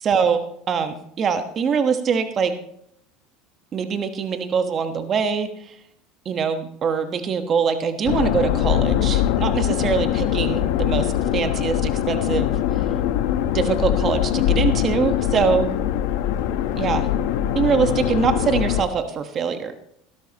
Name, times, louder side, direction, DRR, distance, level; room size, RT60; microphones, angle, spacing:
voice 1, 0.0-2.5 3.7-5.8 6.2-12.5 13.5-15.7 16.7-17.1 17.5-19.7, right 6 dB, 35° right, 7 dB, 1.3 m, -23 dB
sound 1, 8.1-18.9, left 11 dB, 75° left, 1.0 m, -22 dB
16.5 x 12.5 x 3.0 m, 0.70 s
supercardioid pair, 115°, 0 cm